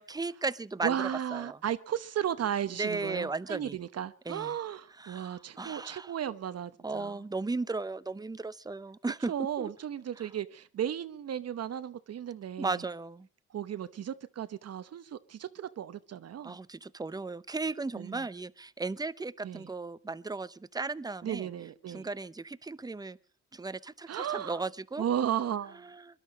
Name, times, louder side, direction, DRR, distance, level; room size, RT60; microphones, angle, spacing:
voice 1, 0.0-1.6 2.8-3.8 4.3-4.5 5.0-6.1 6.8-9.7 10.2-10.3 12.6-13.3 16.4-21.5 21.9-23.2 23.5-25.1 25.8-26.2, right 3 dB, 15° right, 0.8 m, -36 dB
voice 2, 0.8-7.2 9.3-12.8 13.5-16.6 17.9-18.2 19.4-19.7 21.2-22.1 24.1-24.6 25.0-25.8, right 9 dB, 55° right, 1.0 m, -35 dB
23.0 x 12.0 x 5.2 m
cardioid pair, 90°, 30 cm